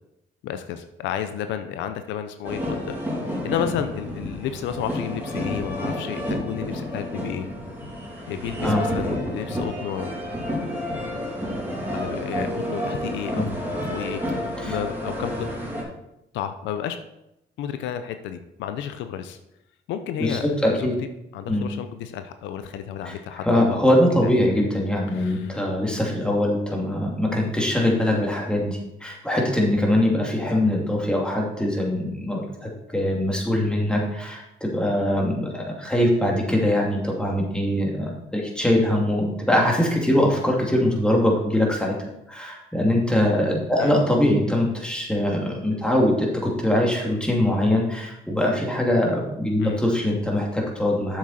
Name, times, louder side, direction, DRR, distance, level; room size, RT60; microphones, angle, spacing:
voice 1, 0.4-3.0 3.4-7.5 8.3-10.2 11.9-13.5 13.9-15.5 16.3-17.0 17.6-19.4 19.9-20.9 21.3-23.8 24.2-24.7 25.1-25.7 43.8-44.0 49.6-49.8, left 9 dB, 85° left, 9 dB, 0.6 m, -32 dB
sound 1, 2.4-15.8, equal, 10° right, 2.8 m, -30 dB
voice 2, 20.2-20.9 21.5-21.7 23.0-23.1 23.5-41.9 42.3-51.2, left 1 dB, 5° left, -2 dB, 2.5 m, -22 dB
7.5 x 7.3 x 4.2 m, 0.85 s
cardioid pair, 80°, 19 cm